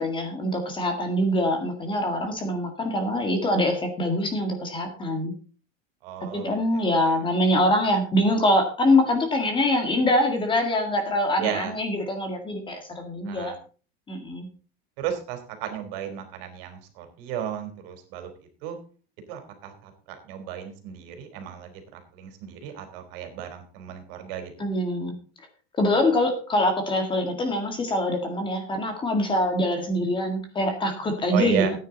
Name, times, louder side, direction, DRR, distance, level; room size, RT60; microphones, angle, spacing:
voice 1, 0.0-5.3 6.3-13.5 14.1-14.5 24.6-25.1 25.8-31.7, left 1 dB, 15° left, 5 dB, 1.9 m, -24 dB
voice 2, 6.0-6.8 11.4-11.7 13.3-13.6 15.0-18.3 18.6-18.8 19.3-19.9 20.2-24.7 31.3-31.7, right 9 dB, 60° right, 6 dB, 3.5 m, -34 dB
14.5 x 9.4 x 4.0 m, 0.37 s
supercardioid pair, 165°, 32 cm